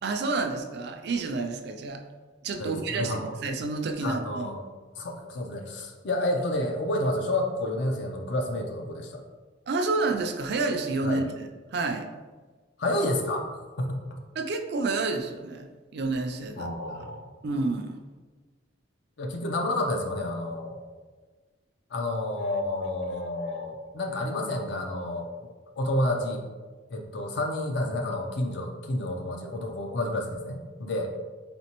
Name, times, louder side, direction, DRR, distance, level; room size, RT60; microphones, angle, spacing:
voice 1, 0.0-2.0 2.4-4.5 9.7-11.4 11.7-12.1 14.4-16.7 17.4-18.0, right 3 dB, 60° right, 4 dB, 0.4 m, -29 dB
voice 2, 2.5-3.3 4.0-4.6 5.0-9.2 11.0-11.2 12.8-13.5 13.8-14.2 16.6-17.2 19.2-20.8 21.9-25.5 25.8-26.4 26.9-31.1, left 1 dB, 65° left, 3 dB, 0.5 m, -30 dB
4.2 x 3.2 x 2.9 m, 1.4 s
head